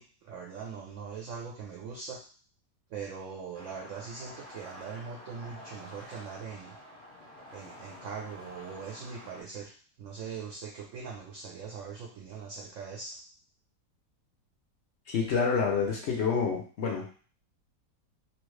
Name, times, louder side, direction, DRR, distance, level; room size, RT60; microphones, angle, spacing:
voice 1, 0.0-2.2 2.9-6.8 7.5-9.7 10.0-13.2, right 5 dB, 70° right, -1 dB, 0.7 m, -41 dB
sound 1, 3.5-9.4, equal, 25° left, 0.9 m, -49 dB
voice 2, 15.1-17.1, left 5 dB, 65° left, 0 dB, 0.7 m, -28 dB
3.0 x 2.3 x 3.1 m, 0.41 s
omnidirectional pair, 1.8 m